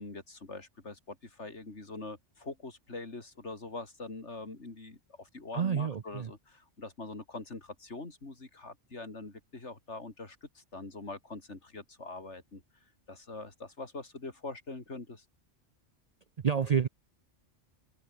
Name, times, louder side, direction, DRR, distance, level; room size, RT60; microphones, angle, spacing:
voice 1, 0.0-12.6 13.1-15.3, left 3 dB, 70° left, 3.7 m, -43 dB
voice 2, 5.5-6.3 16.4-16.9, right 7 dB, 45° right, 0.5 m, -28 dB
omnidirectional pair, 1.3 m